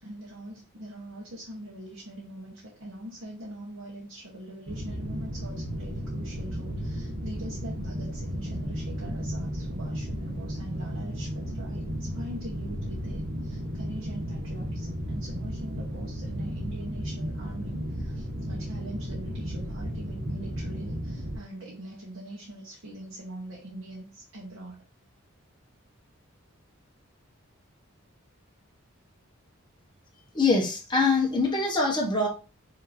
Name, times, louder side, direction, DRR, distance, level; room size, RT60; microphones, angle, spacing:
voice 1, 0.0-24.8, right 1 dB, 75° right, -3 dB, 1.2 m, -42 dB
sound 1, 4.7-21.4, equal, 50° right, 1.0 m, -34 dB
voice 2, 30.3-32.3, left 3 dB, 20° left, -2 dB, 1.2 m, -24 dB
5.8 x 2.9 x 2.7 m, 0.35 s
head